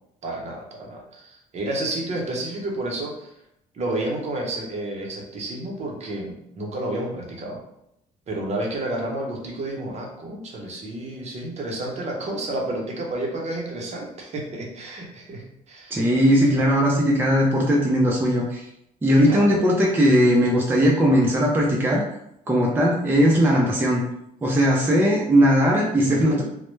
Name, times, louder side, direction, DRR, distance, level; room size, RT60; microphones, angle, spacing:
voice 1, 0.2-3.3 3.7-7.6 8.3-16.1 19.2-19.6 26.0-26.4, right 1 dB, 40° right, -1 dB, 0.7 m, -30 dB
voice 2, 15.9-18.6 19.0-22.0 22.5-24.0 24.4-26.4, equal, 10° right, -3 dB, 0.4 m, -19 dB
2.1 x 2.1 x 3.1 m, 0.78 s
cardioid pair, 110°, 17 cm